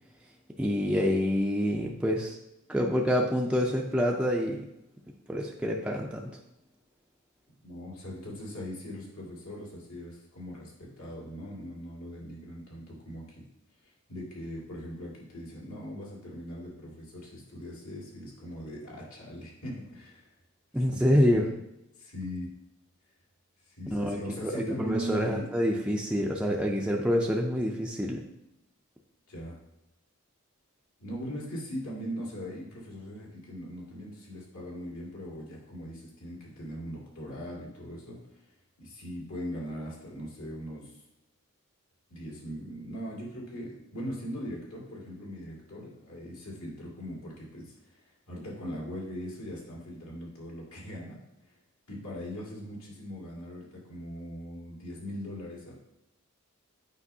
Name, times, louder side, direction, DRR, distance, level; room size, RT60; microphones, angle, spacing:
voice 1, 0.6-2.4 2.7-4.6 5.3-6.3 20.7-21.5 23.9-28.2, equal, 5° right, -1 dB, 0.4 m, -27 dB
voice 2, 7.6-13.4 13.8-20.3 20.9-21.4 22.0-22.5 23.7-25.5 29.3-29.6 31.0-38.4 38.8-40.9 42.1-51.2 51.4-51.6 51.9-55.7, equal, 75° left, -4 dB, 2.2 m, -40 dB
8.3 x 5.1 x 2.7 m, 0.91 s
head